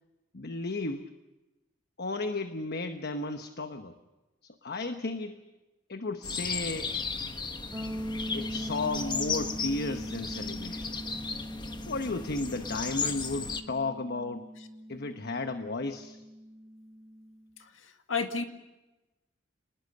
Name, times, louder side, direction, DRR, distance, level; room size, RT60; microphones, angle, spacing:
voice 1, 0.3-1.1 2.0-4.0 4.4-5.4 5.9-6.9 8.3-11.0 11.9-14.4 14.9-16.2, left 3 dB, 55° left, 7 dB, 1.1 m, -34 dB
sound 1, 6.2-13.6, left 4 dB, 25° left, 1.3 m, -35 dB
sound 2, 7.7-17.4, equal, 10° right, 2.3 m, -41 dB
voice 2, 17.6-18.4, left 4 dB, 85° left, 6 dB, 2.1 m, -33 dB
29.0 x 20.0 x 6.7 m, 1.1 s
head